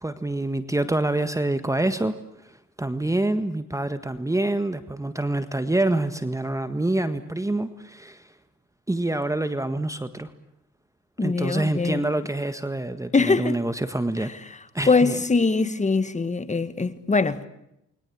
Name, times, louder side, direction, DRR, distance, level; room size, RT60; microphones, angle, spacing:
voice 1, 0.0-2.2 2.4-8.3 8.9-10.3 11.2-14.3 14.7-15.2, right 2 dB, 10° right, 1.6 m, -26 dB
voice 2, 11.2-12.0 13.1-13.6 14.9-17.5, left 4 dB, 25° left, 1.9 m, -22 dB
29.0 x 22.5 x 8.6 m
cardioid pair, 90°, 30 cm